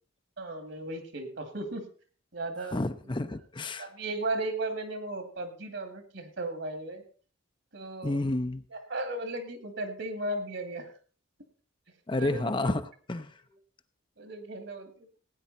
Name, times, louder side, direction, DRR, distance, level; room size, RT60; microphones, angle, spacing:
voice 1, 0.4-1.8 2.3-2.8 3.0-3.1 3.8-7.0 7.7-8.2 8.7-10.9 12.2-12.7 14.2-15.2, right 2 dB, 65° right, 7 dB, 2.4 m, -36 dB
voice 2, 2.7-3.9 8.0-8.6 12.1-12.8 13.1-13.3, left 2 dB, 25° left, 10 dB, 0.6 m, -30 dB
17.5 x 9.3 x 4.2 m, 0.41 s
head